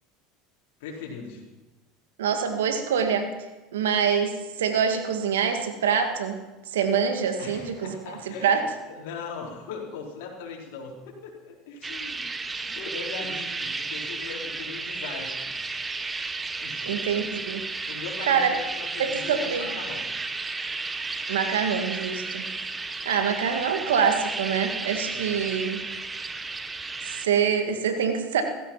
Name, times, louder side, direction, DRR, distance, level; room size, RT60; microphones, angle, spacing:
voice 1, 0.8-1.4 7.4-12.3 12.6-15.5 16.6-17.0 17.8-20.1 25.0-25.5, left 4 dB, 75° left, -2 dB, 4.3 m, -39 dB
voice 2, 2.2-3.3 3.7-6.4 6.7-8.0 8.3-8.6 16.8-17.6 18.3-18.5 19.0-19.7 21.3-22.4 23.1-25.8 27.1-28.4, right 7 dB, 90° right, 7 dB, 1.9 m, -25 dB
sound 1, 11.8-27.3, right 3 dB, 15° right, 1.2 m, -33 dB
16.5 x 15.0 x 5.8 m, 1.1 s
supercardioid pair, 100°, 0 cm